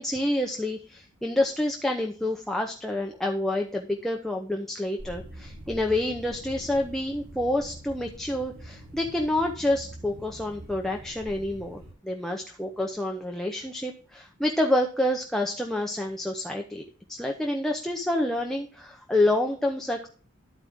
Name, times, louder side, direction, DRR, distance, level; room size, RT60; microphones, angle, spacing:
voice 1, 0.0-16.8 17.1-20.1, left 1 dB, ahead, 1 dB, 0.7 m, -28 dB
fez birds nature car, 5.0-11.9, equal, 80° right, 3.5 m, -44 dB
12.0 x 4.8 x 3.6 m, 0.41 s
head